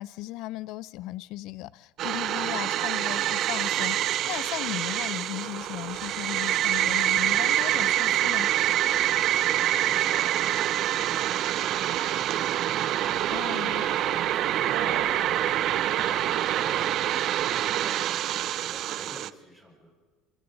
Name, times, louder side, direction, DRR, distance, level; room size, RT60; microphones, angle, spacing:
voice 1, 0.0-8.5 13.3-13.8, left 16 dB, 65° left, 0.6 m, -36 dB
sound 1, 2.0-19.3, right 12 dB, 50° right, 0.5 m, -26 dB
sound 2, 5.8-17.7, right 8 dB, 75° right, 4.2 m, -39 dB
voice 2, 8.8-19.9, equal, 10° left, 5.7 m, -49 dB
28.0 x 26.5 x 4.0 m
supercardioid pair, 120°, 0 cm